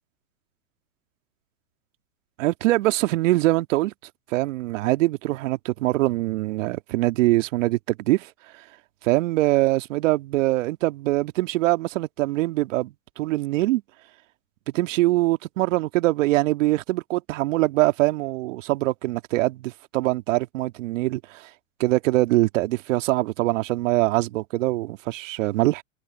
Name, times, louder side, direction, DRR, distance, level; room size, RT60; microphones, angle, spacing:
voice 1, 2.4-3.9 4.3-8.3 9.0-13.8 14.7-21.5 21.8-25.8, right 18 dB, 60° right, 1.8 m, -23 dB
hypercardioid pair, 110°, 43 cm